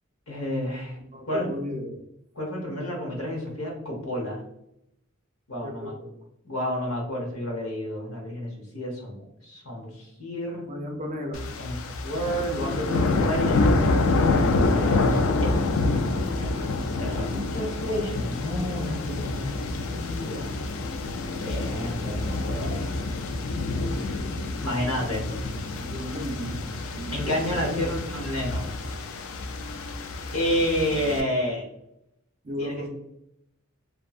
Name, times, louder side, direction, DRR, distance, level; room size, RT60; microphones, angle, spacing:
voice 1, 0.3-1.0 1.3-1.5 2.3-4.4 5.5-5.9 6.4-10.7 11.6-13.9 14.7-15.6 16.4-16.6 16.9-20.5 21.4-22.9 24.6-25.2 27.1-28.9 30.3-31.6 32.6-32.9, equal, 85° left, -1 dB, 0.9 m, -30 dB
voice 2, 1.1-2.0 5.6-6.1 10.6-11.4 12.6-13.4 25.2-25.5 25.8-26.6 26.9-27.9 32.4-32.9, equal, 35° right, 3 dB, 0.4 m, -34 dB
sound 1, 11.3-31.2, left 3 dB, 65° left, 0.3 m, -27 dB
2.6 x 2.2 x 2.3 m, 0.80 s
head